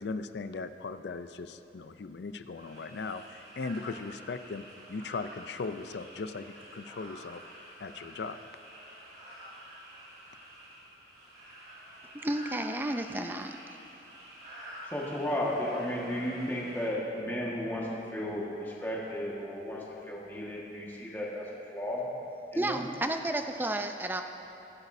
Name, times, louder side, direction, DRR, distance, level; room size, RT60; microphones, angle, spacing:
voice 1, 0.0-7.4 7.8-8.4, left 4 dB, 75° left, 11 dB, 0.4 m, -38 dB
sound 1, 2.5-16.9, right 1 dB, 60° right, 3.0 m, -49 dB
voice 2, 12.1-13.6 22.5-24.2, right 1 dB, 10° right, 6 dB, 0.4 m, -32 dB
voice 3, 14.8-22.1 22.5-22.8, left 1 dB, 10° left, -5 dB, 1.5 m, -34 dB
23.5 x 8.2 x 2.7 m, 2.9 s
head